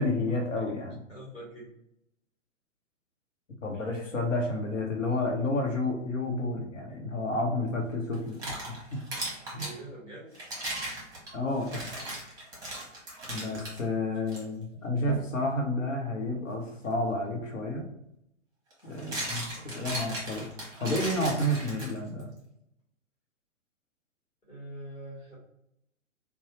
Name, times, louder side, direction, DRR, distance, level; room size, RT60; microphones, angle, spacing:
voice 1, 0.0-0.9 3.6-9.0 9.5-9.7 11.3-11.8 13.3-17.8 18.8-20.5 20.8-22.3, left 1 dB, 75° left, 2 dB, 0.9 m, -30 dB
voice 2, 1.1-1.7 9.6-10.5 24.5-25.4, right 1 dB, 15° left, -6 dB, 1.3 m, -44 dB
sound 1, 8.1-9.8 10.3-13.8 14.3-14.4 15.1-15.3 17.4-17.5 18.7-22.2, right 1 dB, 10° right, 1.0 m, -37 dB
2.7 x 2.3 x 3.0 m, 0.79 s
figure-of-eight pair, 115°, 38 cm